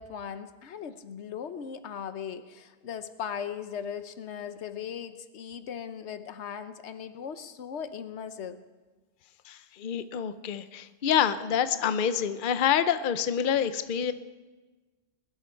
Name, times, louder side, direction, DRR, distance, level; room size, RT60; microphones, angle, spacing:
voice 1, 0.0-8.6, left 7 dB, 85° left, 11 dB, 1.1 m, -38 dB
voice 2, 9.4-14.1, left 8 dB, 55° left, 12 dB, 0.8 m, -27 dB
21.0 x 12.0 x 4.5 m, 1.3 s
omnidirectional pair, 1.1 m